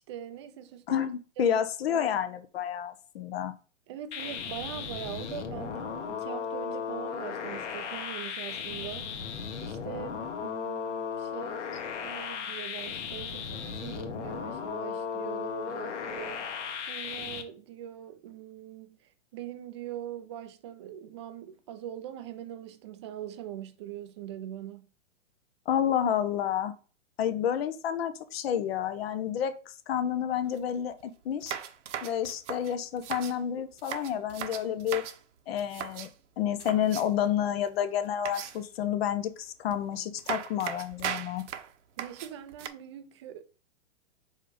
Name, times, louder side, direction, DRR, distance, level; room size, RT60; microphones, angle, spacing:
voice 1, 0.0-1.1 1.4-1.6 1.9-2.2 3.9-16.6 16.9-24.9 42.0-43.4, right 11 dB, 25° right, 0.4 m, -42 dB
voice 2, 0.9-3.5 25.7-26.7 27.2-31.6 32.0-35.0 35.5-36.1 36.4-41.4, left 9 dB, 55° left, 0.9 m, -30 dB
sound 1, 4.1-17.4, left 6 dB, 70° left, 1.3 m, -36 dB
sound 2, 30.5-30.6 30.9-31.0 31.4-33.4 33.8-35.2 35.6-36.1 36.6-37.3 38.3-38.8 39.7-39.8 40.2-42.7, right 9 dB, 70° right, 0.9 m, -38 dB
5.3 x 4.0 x 5.0 m
hypercardioid pair, 155°, 38 cm